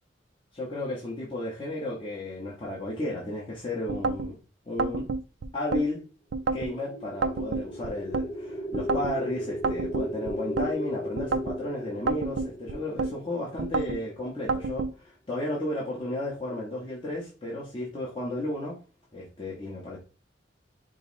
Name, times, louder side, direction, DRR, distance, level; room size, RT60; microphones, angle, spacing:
voice 1, 0.5-4.4 4.7-5.1 5.5-6.0 6.5-18.8 19.1-20.0, left 1 dB, 30° left, 1.0 m, -33 dB
sound 1, 3.9-4.3 4.8-5.9 6.3-6.7 7.2-8.3 8.7-9.2 9.6-10.7 11.2-11.6 12.1-13.1 13.6-14.0 14.5-14.9, right 4 dB, 65° right, 0.4 m, -29 dB
sound 2, 6.4-14.5, left 1 dB, 50° left, 2.4 m, -37 dB
5.3 x 2.0 x 4.0 m
head